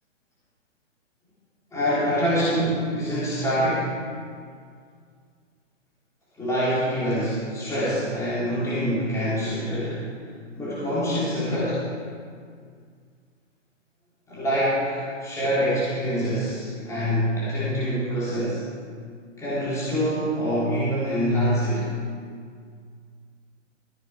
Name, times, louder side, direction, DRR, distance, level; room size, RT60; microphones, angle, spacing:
voice 1, 1.7-4.0 6.4-10.0 10.6-11.8 14.3-18.6 19.4-21.9, equal, 10° left, -10 dB, 3.2 m, -25 dB
14.5 x 9.3 x 4.7 m, 2.1 s
hypercardioid pair, 145°, 38 cm